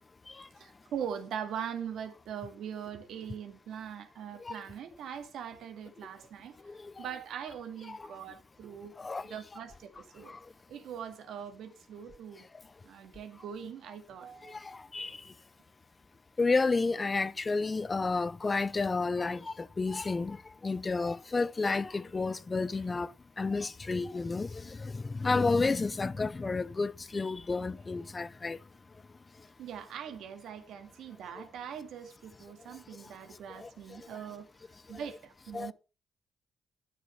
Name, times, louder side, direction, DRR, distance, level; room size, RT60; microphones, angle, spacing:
voice 1, 0.6-8.9 9.2-10.3 10.7-12.5 12.8-14.6 22.8-22.9 29.6-34.5 34.9-35.7, right 8 dB, 80° right, 2.2 m, -42 dB
voice 2, 14.5-15.1 16.4-20.4 20.6-23.1 23.4-28.6 33.6-33.7 35.5-35.7, left 3 dB, 20° left, 0.5 m, -31 dB
12.5 x 6.7 x 5.7 m
cardioid pair, 150°, 0 cm